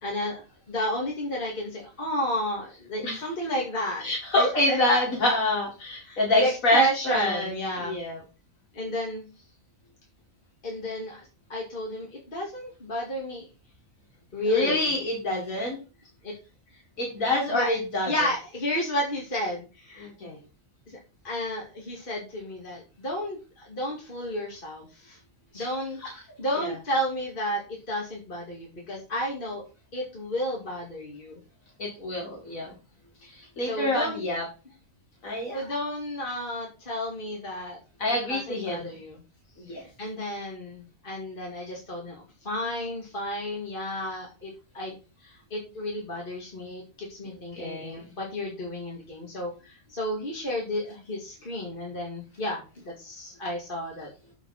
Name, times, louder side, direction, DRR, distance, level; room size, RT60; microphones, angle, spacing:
voice 1, 0.0-4.1 4.3-4.8 6.0-8.0 8.7-9.2 10.6-13.5 14.3-14.9 16.2-16.3 16.7-16.8 17.5-17.7 18.1-20.1 20.9-21.0 21.2-25.2 25.5-27.6 27.9-29.6 29.9-31.4 33.6-34.2 35.3-37.8 38.3-39.2 40.0-54.1, equal, 40° left, -2 dB, 2.4 m, -32 dB
voice 2, 4.0-7.5 7.8-8.2 14.5-15.8 17.0-18.1 20.0-20.4 25.5-25.7 26.0-26.1 26.6-26.7 31.8-32.7 33.3-34.4 35.2-35.6 38.0-38.9 39.6-39.8 47.5-48.1, left 1 dB, 80° left, -1 dB, 2.5 m, -27 dB
7.7 x 4.7 x 5.7 m, 0.32 s
omnidirectional pair, 1.4 m